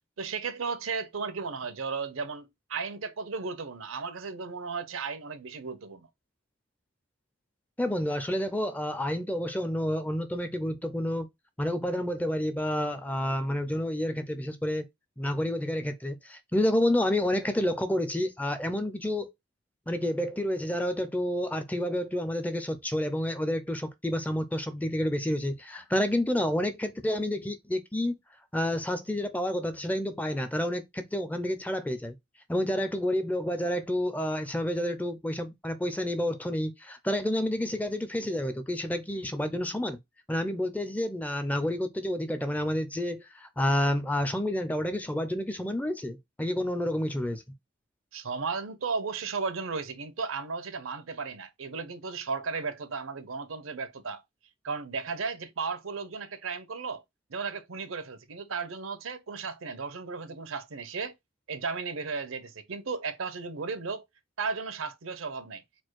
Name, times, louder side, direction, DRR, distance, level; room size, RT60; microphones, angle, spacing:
voice 1, 0.2-6.1 48.1-54.2 54.6-57.0 57.3-61.1 61.5-64.0 64.4-65.6, right 4 dB, 80° right, 0.7 m, -35 dB
voice 2, 7.8-11.3 11.6-14.8 15.2-19.3 19.9-28.1 28.5-32.1 32.5-40.0 40.3-47.4, left 1 dB, 5° left, 0.4 m, -29 dB
4.4 x 2.3 x 4.5 m
head